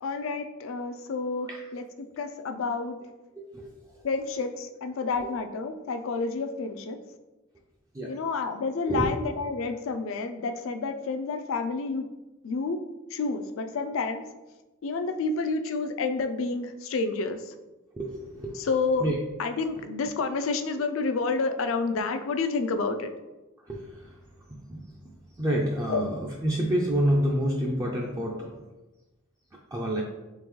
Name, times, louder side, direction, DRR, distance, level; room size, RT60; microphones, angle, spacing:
voice 1, 0.0-3.0 4.0-7.0 8.1-12.1 12.4-12.8 13.1-14.2 14.8-17.4 18.6-19.0 19.4-23.1 25.9-26.0, left 4 dB, 75° left, 8 dB, 0.4 m, -29 dB
voice 2, 3.3-4.1 5.2-5.3 7.9-8.2 8.9-9.1 17.9-18.7 19.0-19.2 23.6-24.2 24.5-28.6 29.5-30.0, right 1 dB, 15° right, -2 dB, 0.4 m, -29 dB
3.7 x 3.4 x 3.0 m, 1.1 s
head